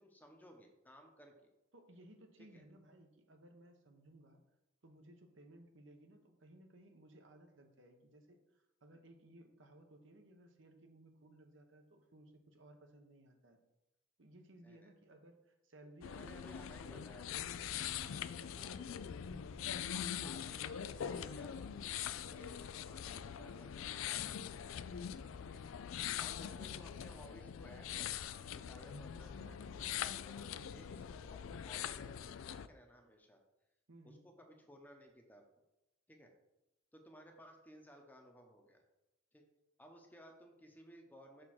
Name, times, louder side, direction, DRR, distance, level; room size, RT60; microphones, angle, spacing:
voice 1, 0.0-1.5 2.5-2.6 14.6-14.9 16.1-17.5 18.6-19.2 19.9-21.7 22.1-22.6 22.8-24.5 25.4-25.6 26.2-32.1 32.4-33.4 34.0-35.4 36.1-36.3 36.9-38.8 39.3-39.4 39.8-41.4, equal, 10° left, 3 dB, 0.8 m, -59 dB
voice 2, 1.7-4.4 4.8-13.6 14.2-17.2 18.0-19.8 33.9-34.2, right 1 dB, 70° right, 5 dB, 0.9 m, -60 dB
sound 1, 16.0-32.7, left 9 dB, 90° left, 0.4 m, -43 dB
6.4 x 3.6 x 6.0 m, 0.92 s
head